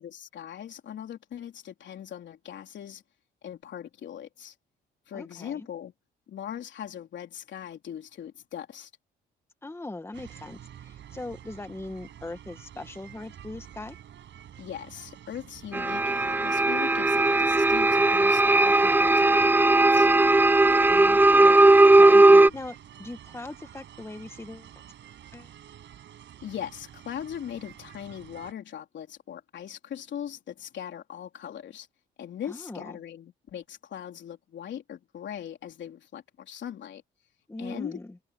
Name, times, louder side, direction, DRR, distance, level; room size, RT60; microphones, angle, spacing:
voice 1, 0.0-3.0 3.4-4.5 5.1-5.9 6.3-8.9 14.6-20.1 22.1-22.5 26.4-31.9 32.2-37.0 37.6-38.0, left 9 dB, 65° left, 3.8 m, -40 dB
voice 2, 5.1-5.7 9.6-14.0 20.6-22.2 22.5-24.8 25.3-25.5 32.4-33.0 37.5-38.2, left 2 dB, 10° left, 1.7 m, -40 dB
sound 1, 10.1-28.5, right 10 dB, 70° right, 7.6 m, -48 dB
sound 2, 15.7-22.5, right 2 dB, 10° right, 0.5 m, -18 dB
cardioid pair, 90°, 20 cm